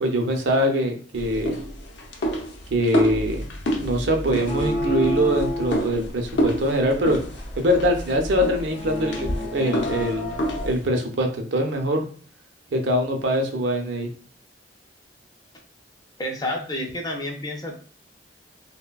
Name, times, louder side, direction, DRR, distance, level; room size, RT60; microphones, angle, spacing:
voice 1, 0.0-1.6 2.7-7.2 7.6-12.0 12.7-14.1, equal, 80° right, 3 dB, 0.5 m, -23 dB
sound 1, 1.1-10.9, equal, 75° left, 0.5 m, -29 dB
sound 2, 4.5-10.7, left 1 dB, 45° left, 0.8 m, -31 dB
voice 2, 16.2-17.8, left 1 dB, 20° left, 1 dB, 0.4 m, -29 dB
3.2 x 2.1 x 2.2 m, 0.43 s
head